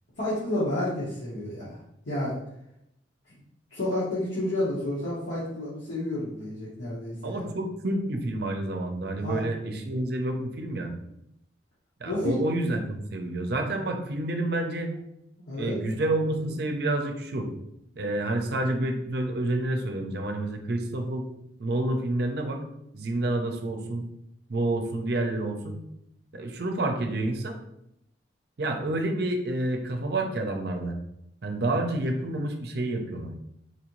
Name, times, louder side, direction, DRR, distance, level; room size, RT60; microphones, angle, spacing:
voice 1, 0.2-1.8 2.0-2.3 3.7-7.5 9.2-9.4 12.1-12.4 15.4-15.8 16.3-16.5, left 1 dB, 80° left, -9 dB, 1.1 m, -30 dB
voice 2, 7.2-10.9 12.0-14.9 15.6-17.5 18.0-21.3 21.6-22.6 22.9-24.0 24.5-25.8 26.3-27.5 28.6-31.0 31.4-33.3, right 2 dB, 55° right, 4 dB, 0.5 m, -29 dB
4.2 x 2.6 x 3.0 m, 0.81 s
head